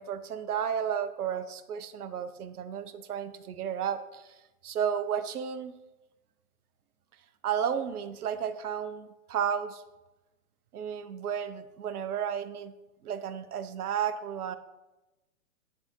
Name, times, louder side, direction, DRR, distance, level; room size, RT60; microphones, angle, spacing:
voice 1, 0.0-4.3 4.6-5.7 7.4-9.8 10.7-12.7 13.0-14.6, right 8 dB, 85° right, 11 dB, 0.7 m, -32 dB
9.7 x 3.5 x 3.0 m, 1.0 s
hypercardioid pair, 150°, 44 cm